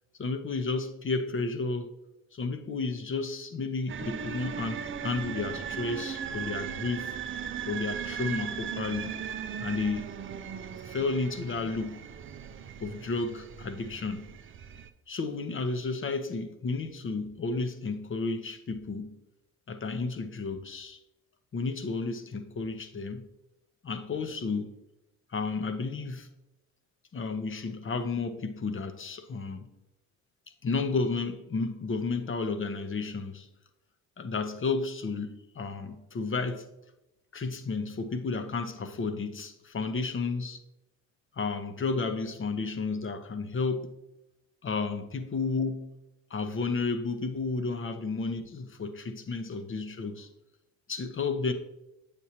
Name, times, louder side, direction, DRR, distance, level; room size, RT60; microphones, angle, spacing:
voice 1, 0.2-1.9 2.3-7.1 7.7-9.2 9.6-10.1 10.8-12.0 12.8-14.3 15.1-19.1 19.7-21.0 21.5-23.3 23.8-24.7 25.3-26.3 27.1-29.7 30.6-33.5 34.2-36.7 37.3-40.6 41.3-43.9 44.6-46.0 46.3-50.3 50.9-51.5, left 4 dB, 30° left, 0.8 m, -32 dB
sound 1, 3.9-14.9, right 8 dB, 30° right, 0.5 m, -38 dB
8.3 x 6.8 x 2.8 m
hypercardioid pair, 50°, 41 cm